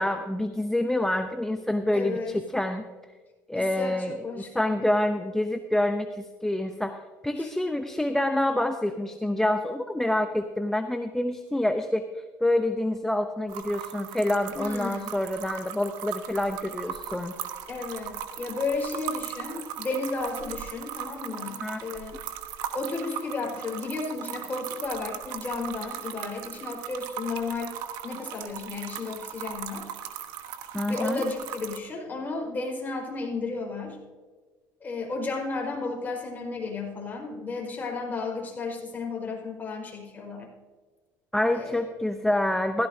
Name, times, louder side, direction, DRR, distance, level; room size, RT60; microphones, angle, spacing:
voice 1, 0.0-2.8 3.5-17.4 21.6-21.8 30.7-31.3 41.3-42.9, left 1 dB, 5° left, 6 dB, 0.7 m, -27 dB
voice 2, 1.9-2.3 3.5-4.8 7.4-7.5 14.5-15.1 17.7-22.2 22.7-27.8 28.0-29.9 30.9-34.0 34.8-40.5 41.5-41.8, left 3 dB, 25° left, 0 dB, 4.6 m, -33 dB
sound 1, 13.5-31.8, right 10 dB, 75° right, 1.2 m, -38 dB
16.5 x 15.0 x 2.7 m, 1.4 s
supercardioid pair, 105°, 7 cm